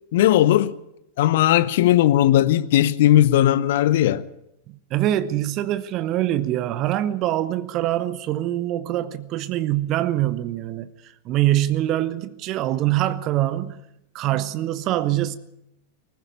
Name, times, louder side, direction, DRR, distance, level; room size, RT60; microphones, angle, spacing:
voice 1, 0.1-0.7 1.2-4.2, left 13 dB, 55° left, 0.8 m, -17 dB
voice 2, 4.7-10.9 11.2-13.8 14.1-15.4, right 13 dB, 35° right, 0.8 m, -24 dB
19.5 x 15.0 x 8.7 m
figure-of-eight pair, 90°, 0 cm